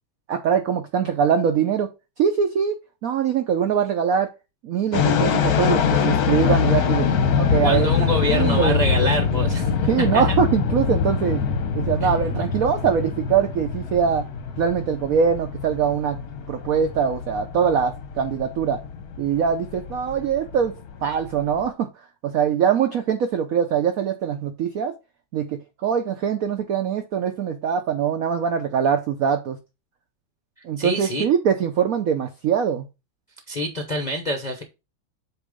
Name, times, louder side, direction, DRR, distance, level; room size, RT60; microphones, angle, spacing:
voice 1, 0.3-1.9 2.2-2.8 3.0-4.3 4.6-7.1 7.4-8.8 9.9-11.4 11.7-14.3 14.6-16.2 16.5-18.8 19.2-21.9 22.2-24.9 25.3-29.6 30.6-32.8, right 7 dB, 70° right, 7 dB, 0.8 m, -22 dB
sound 1, 4.9-21.7, left 6 dB, 60° left, 1.1 m, -24 dB
voice 2, 7.6-9.7 10.1-10.3 12.0-12.1 30.8-31.2 33.5-34.6, left 1 dB, 40° left, 1 dB, 0.6 m, -26 dB
8.2 x 2.9 x 5.0 m, 0.27 s
omnidirectional pair, 2.2 m